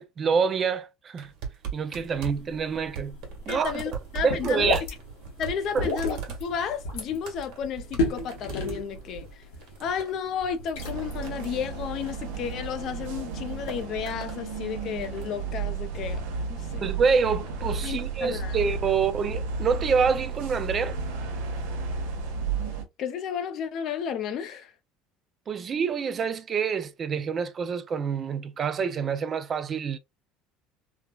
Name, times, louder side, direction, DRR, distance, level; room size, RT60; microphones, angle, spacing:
voice 1, 0.0-1.3 1.7-3.2 3.5-4.0 4.2-4.8 5.7-5.9 16.8-21.0 25.5-30.0, right 6 dB, 30° right, 0.3 m, -27 dB
sound 1, 1.2-13.1 13.4-14.4 14.8-15.5 16.4-16.7 17.5-18.1 19.0-19.1, right 6 dB, 70° right, 1.1 m, -41 dB
sound 2, 2.0-13.9, left 3 dB, 90° left, 1.2 m, -35 dB
voice 2, 3.5-4.6 5.4-9.4 9.8-16.2 16.5-16.8 17.8-18.6 23.0-24.7, left 7 dB, 50° left, 0.4 m, -32 dB
sound 3, 10.8-22.8, right 4 dB, 85° right, 0.8 m, -33 dB
3.2 x 2.1 x 2.2 m
cardioid pair, 130°, 0 cm